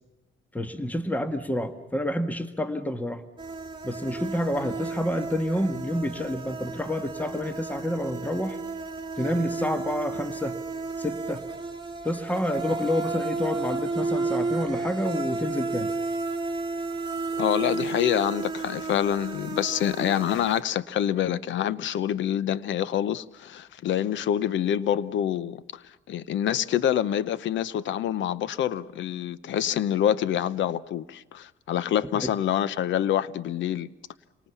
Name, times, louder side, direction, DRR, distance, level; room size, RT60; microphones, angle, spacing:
voice 1, 0.5-3.2 3.8-8.6 9.2-10.6 11.0-11.4 12.0-15.9 32.1-32.3, left 1 dB, 10° left, 1.5 m, -29 dB
sound 1, 3.4-20.6, right 3 dB, 20° right, 2.3 m, -32 dB
voice 2, 17.4-25.8 26.1-33.9, left 10 dB, 70° left, 0.8 m, -26 dB
27.5 x 19.0 x 7.1 m
cardioid pair, 90°, 20 cm